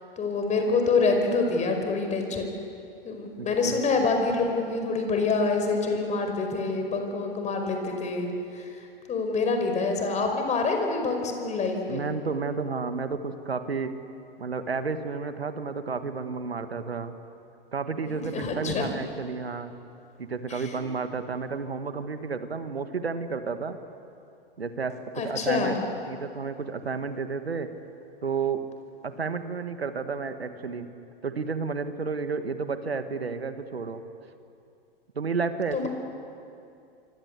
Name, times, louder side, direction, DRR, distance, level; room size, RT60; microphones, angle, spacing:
voice 1, 0.2-2.6 3.0-12.0 18.1-18.9 20.5-20.7 25.2-25.8 35.7-35.9, left 4 dB, 25° left, 4 dB, 5.1 m, -26 dB
voice 2, 3.4-3.8 11.9-13.9 14.4-17.1 17.7-19.7 20.2-23.8 24.6-25.8 26.1-27.7 28.2-28.6 29.0-30.9 31.2-34.0 35.2-35.9, right 5 dB, 85° right, 9 dB, 1.8 m, -31 dB
27.5 x 23.5 x 8.3 m, 2.5 s
hypercardioid pair, 110°, 30 cm